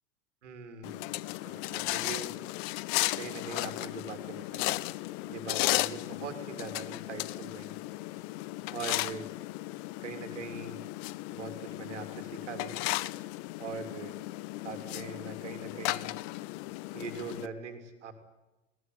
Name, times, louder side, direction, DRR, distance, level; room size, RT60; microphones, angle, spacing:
voice 1, 0.4-2.3 3.1-4.7 5.3-7.8 8.7-9.3 10.0-10.8 11.3-12.8 13.6-14.1 14.6-16.1 16.9-18.1, right 5 dB, 65° right, 7 dB, 3.4 m, -42 dB
sound 1, 0.8-17.5, left 20 dB, 40° left, 0.7 m, -35 dB
20.5 x 18.0 x 9.5 m, 1.0 s
figure-of-eight pair, 85°, 38 cm